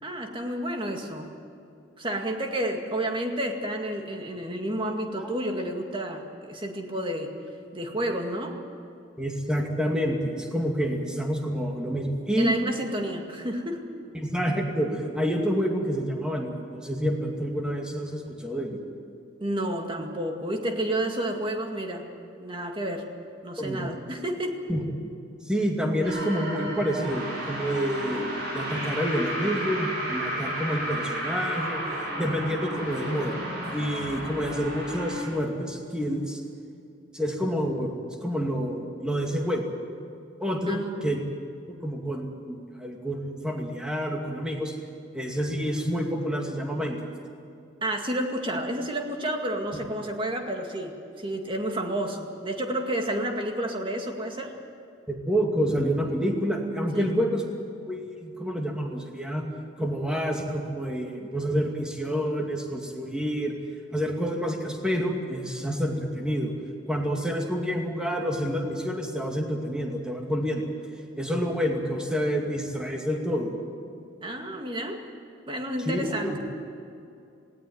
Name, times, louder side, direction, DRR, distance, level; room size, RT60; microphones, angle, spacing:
voice 1, 0.0-1.3 2.0-7.3 7.7-8.6 12.4-13.9 19.4-22.1 22.4-23.1 23.4-24.6 40.7-41.1 47.8-54.5 56.9-57.1 74.2-75.0 75.5-76.4, right 1 dB, 25° right, 3 dB, 2.1 m, -30 dB
voice 2, 9.2-12.5 14.1-18.8 23.6-23.9 24.7-24.9 25.4-31.8 32.2-33.4 33.7-36.4 37.1-37.9 38.2-39.7 40.4-41.2 41.7-44.8 45.1-47.1 55.1-57.4 57.9-59.4 59.8-63.5 63.9-66.5 66.9-70.7 71.2-73.6 75.8-76.4, equal, 5° right, 1 dB, 2.4 m, -28 dB
sound 1, 26.0-35.2, equal, 55° right, 7.9 m, -32 dB
18.5 x 17.5 x 9.5 m, 2.5 s
head